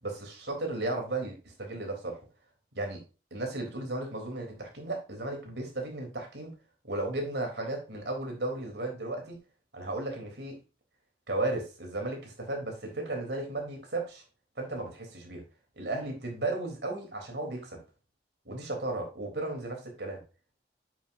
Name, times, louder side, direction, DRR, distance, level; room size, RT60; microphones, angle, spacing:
voice 1, 0.0-2.2 2.8-3.0 3.3-6.5 6.8-9.4 9.7-10.6 11.3-14.2 14.6-15.4 15.8-17.8 18.5-20.2, right 2 dB, 80° right, 2 dB, 3.6 m, -35 dB
8.6 x 7.6 x 2.7 m, 0.32 s
head